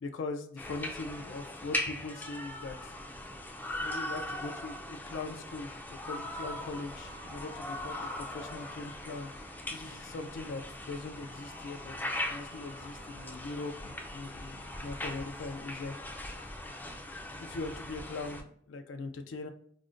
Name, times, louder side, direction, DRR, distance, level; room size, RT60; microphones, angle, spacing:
voice 1, 0.0-2.9 3.8-5.7 6.0-9.3 9.7-15.9 17.4-19.5, left 3 dB, 85° left, 6 dB, 0.4 m, -41 dB
sound 1, 0.6-18.4, left 1 dB, 10° left, 0.3 m, -40 dB
sound 2, 6.6-15.3, right 1 dB, 55° right, 1.0 m, -55 dB
4.9 x 2.1 x 2.4 m, 0.65 s
head